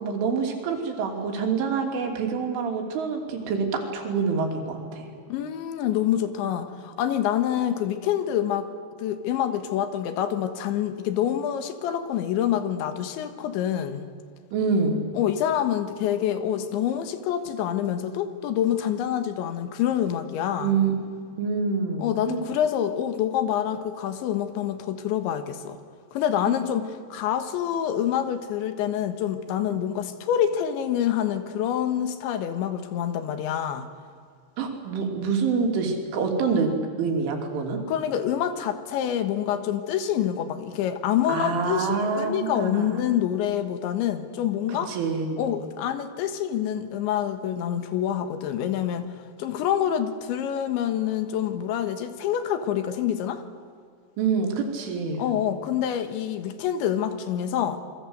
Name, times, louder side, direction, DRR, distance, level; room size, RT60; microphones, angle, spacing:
voice 1, 0.0-5.1 14.5-15.0 20.6-21.0 21.4-22.5 26.5-26.6 34.6-36.7 37.0-37.8 41.3-43.0 44.7-45.4 54.2-55.2, right 5 dB, 85° right, 3 dB, 5.5 m, -26 dB
voice 2, 5.3-8.7 9.0-14.1 15.2-20.8 22.0-25.8 26.1-33.9 37.9-44.9 45.4-49.1 49.4-53.4 55.2-57.8, left 10 dB, 75° left, 9 dB, 3.7 m, -26 dB
28.0 x 23.0 x 8.0 m, 2.2 s
omnidirectional pair, 5.4 m